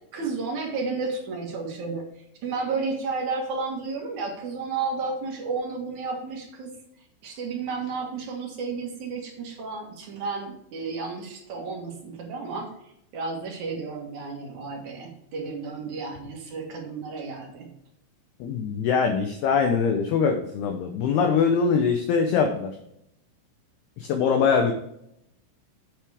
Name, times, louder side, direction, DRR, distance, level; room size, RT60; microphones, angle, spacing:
voice 1, 0.1-2.0 2.4-6.7 7.2-12.7 13.1-17.7, right 4 dB, 60° right, 0 dB, 2.0 m, -32 dB
voice 2, 18.4-22.7 24.0-24.7, left 6 dB, 80° left, 4 dB, 2.3 m, -23 dB
9.1 x 8.3 x 3.5 m, 0.77 s
omnidirectional pair, 5.8 m